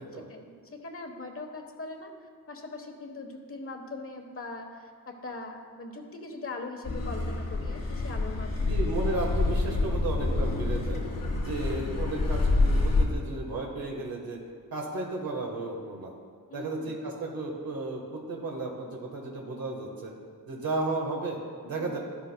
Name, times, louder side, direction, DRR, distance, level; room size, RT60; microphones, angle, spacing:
voice 1, 0.3-8.7 16.5-16.9 21.8-21.9, left 2 dB, 40° left, 4 dB, 1.1 m, -41 dB
Car passing by / Accelerating revving vroom, 6.8-13.0, left 2 dB, 70° left, 1.6 m, -27 dB
voice 2, 8.6-11.0 11.4-14.4 14.7-16.1 16.5-20.1 20.5-21.4 21.6-22.0, right 2 dB, 90° right, -1 dB, 1.3 m, -34 dB
12.0 x 11.0 x 2.2 m, 2.1 s
wide cardioid pair, 115°, 35 cm